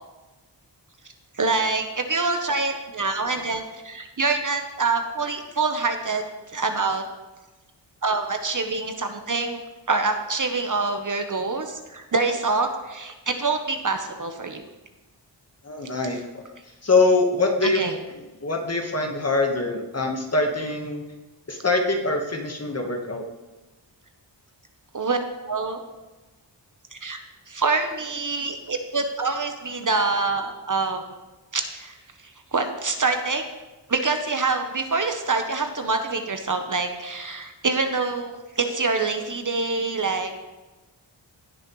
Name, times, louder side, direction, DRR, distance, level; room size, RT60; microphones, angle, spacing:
voice 1, 1.3-6.2 6.5-7.0 8.0-9.6 9.9-14.6 17.6-17.9 24.9-25.2 25.5-25.8 26.9-27.2 27.5-31.0 31.5-31.9 32.5-33.4 33.9-40.3, right 3 dB, 45° right, 6 dB, 0.9 m, -25 dB
voice 2, 15.6-16.4 16.8-17.8 18.4-21.0 21.5-23.2, left 3 dB, 35° left, 3 dB, 1.3 m, -23 dB
17.0 x 6.4 x 3.1 m, 1.1 s
wide cardioid pair, 95°, 44 cm